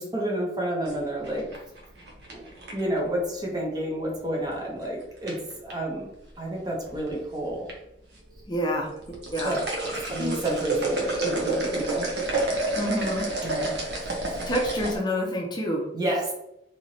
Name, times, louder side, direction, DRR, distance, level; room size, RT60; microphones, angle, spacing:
voice 1, 0.0-1.4 2.3-2.4 2.7-6.1 6.4-7.7 9.4-9.7 10.1-12.1 13.4-13.8 14.3-14.4 15.9-16.3, right 1 dB, 20° right, -1 dB, 0.7 m, -30 dB
sound 1, 0.9-3.0 4.5-4.8 5.3-5.7 6.6-7.2 7.5-7.7 8.2-8.3 8.9-15.0, right 2 dB, 65° right, 0.9 m, -29 dB
voice 2, 8.5-8.9 9.3-9.6 10.2-10.4 12.8-13.3 14.5-15.8, equal, 25° left, -1 dB, 0.6 m, -27 dB
3.1 x 2.9 x 2.7 m, 0.85 s
head